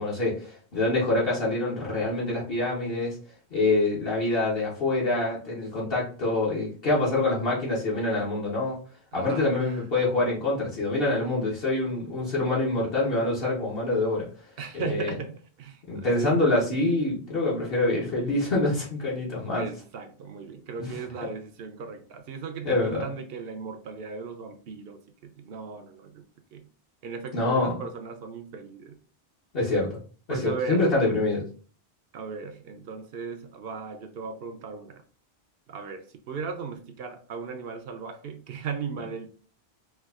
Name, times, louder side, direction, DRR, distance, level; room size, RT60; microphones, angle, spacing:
voice 1, 0.0-3.2 3.5-8.8 9.1-14.3 14.7-15.1 15.9-19.7 20.8-21.0 22.6-23.0 27.3-27.8 29.5-30.0 30.3-31.4, left 2 dB, 60° left, 1.2 m, -26 dB
voice 2, 9.1-9.8 14.6-16.3 19.5-26.2 26.5-26.7 27.0-29.0 30.3-30.9 32.1-35.0 35.7-39.3, right 5 dB, 65° right, 0.8 m, -37 dB
4.5 x 2.4 x 2.3 m
omnidirectional pair, 1.1 m